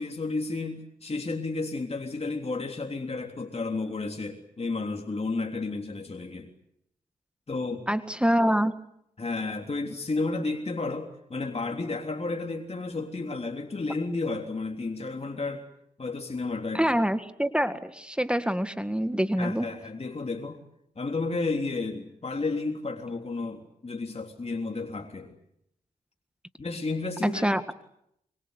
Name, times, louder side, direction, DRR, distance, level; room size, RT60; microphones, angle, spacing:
voice 1, 0.0-6.5 7.5-7.9 9.2-15.6 16.0-16.8 19.4-20.6 20.9-25.4 26.6-27.4, left 3 dB, 45° left, 3 dB, 3.5 m, -32 dB
voice 2, 7.9-8.7 16.7-19.7 27.2-27.6, equal, 5° right, 10 dB, 1.8 m, -25 dB
25.0 x 24.0 x 8.3 m, 0.76 s
cardioid pair, 50°, 15 cm